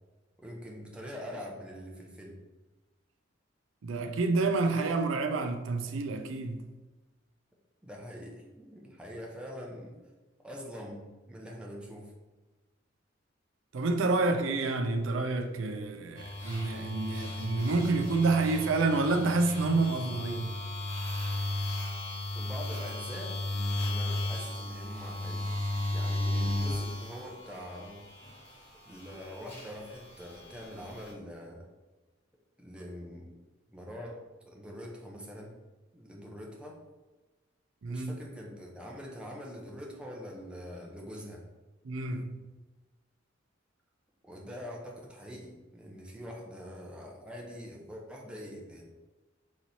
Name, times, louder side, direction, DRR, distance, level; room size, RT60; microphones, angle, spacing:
voice 1, 0.4-2.4 7.8-10.0 10.4-12.1 22.3-23.4 23.8-25.5 25.9-28.0 28.8-31.6 32.6-33.3 33.7-35.6 35.9-36.8 37.9-41.4 44.2-48.8, equal, 5° right, 0.7 m, -44 dB
voice 2, 3.8-6.7 13.7-20.6 37.8-38.2 41.8-42.4, right 3 dB, 85° right, 0.5 m, -28 dB
sound 1, 16.2-28.5 28.9-31.1, left 1 dB, 35° left, 1.5 m, -35 dB
4.0 x 3.1 x 4.1 m
head